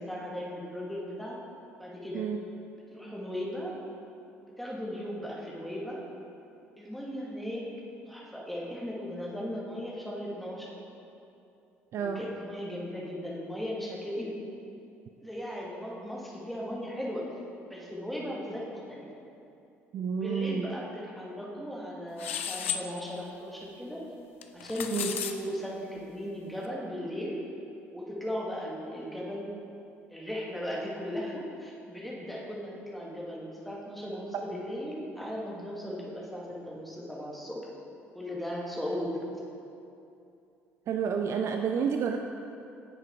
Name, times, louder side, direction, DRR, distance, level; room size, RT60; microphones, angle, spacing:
voice 1, 0.0-1.4 1.8-2.2 2.9-3.7 4.6-6.0 6.8-7.6 8.1-10.8 12.0-14.4 15.2-17.3 17.7-19.1 20.1-24.0 24.5-27.4 27.9-29.5 30.1-37.6 38.1-39.2, equal, ahead, -3 dB, 1.7 m, -37 dB
voice 2, 19.9-20.7 24.9-25.1 40.9-42.2, right 6 dB, 45° right, 4 dB, 0.4 m, -29 dB
sound 1, 22.2-22.8 24.4-25.3, left 9 dB, 75° left, 0.4 m, -33 dB
9.3 x 6.5 x 3.5 m, 2.7 s
figure-of-eight pair, 55°, 7 cm